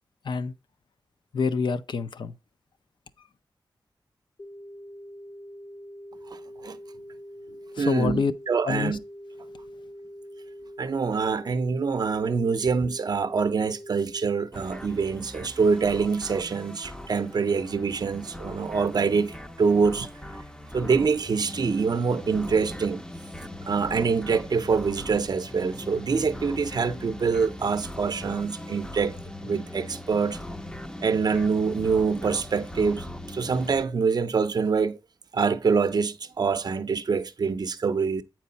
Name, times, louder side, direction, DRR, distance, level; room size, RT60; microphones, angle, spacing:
voice 1, 1.3-2.3 7.8-8.3 8.6-9.0, left 5 dB, 70° left, 0.5 m, -26 dB
sound 1, 4.4-14.4, equal, 55° left, 0.9 m, -44 dB
voice 2, 7.8-9.0 10.8-20.1 20.7-23.0 23.7-29.2 29.4-30.4 31.0-35.0 35.3-38.2, right 5 dB, 55° right, 0.5 m, -25 dB
sound 2, 14.5-33.9, left 1 dB, 10° left, 0.5 m, -40 dB
8.4 x 4.6 x 4.1 m
wide cardioid pair, 135°, 8 cm